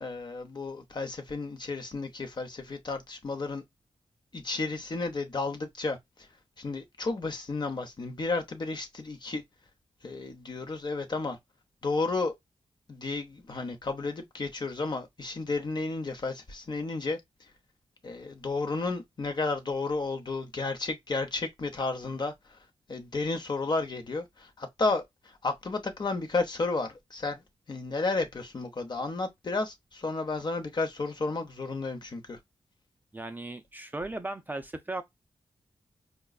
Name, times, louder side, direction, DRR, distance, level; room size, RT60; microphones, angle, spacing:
voice 1, 0.0-3.6 4.3-6.3 6.6-9.4 10.0-11.4 11.8-12.3 12.9-17.2 18.0-22.6 22.9-27.4 27.7-32.4, left 3 dB, 45° left, 0.8 m, -32 dB
voice 2, 33.1-35.0, right 2 dB, 15° right, 0.5 m, -36 dB
4.9 x 2.2 x 2.3 m
cardioid pair, 80°, 11 cm